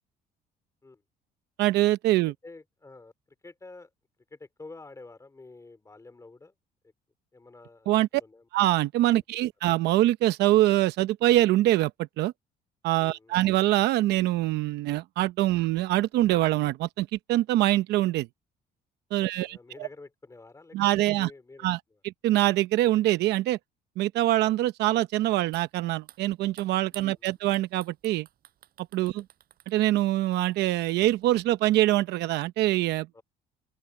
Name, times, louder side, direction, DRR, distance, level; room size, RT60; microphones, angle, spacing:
voice 1, 1.6-2.3 7.9-8.1 8.5-12.3 12.8-18.3 19.1-19.9 20.7-21.3 21.6-21.8 22.0-23.6 24.0-28.3 28.9-29.2 29.7-33.2, right 15 dB, 80° right, 0.8 m, -24 dB
voice 2, 2.2-3.1 3.4-3.9 4.3-6.5 6.8-6.9 7.3-8.5 9.4-9.5 13.0-13.4 19.2-22.0 26.9-27.4 29.0-29.2 33.1-33.2, left 3 dB, 20° left, 3.4 m, -49 dB
sound 1, 25.5-25.7 26.0-31.4, right 12 dB, 65° right, 7.1 m, -53 dB
open air
cardioid pair, 110°, 17 cm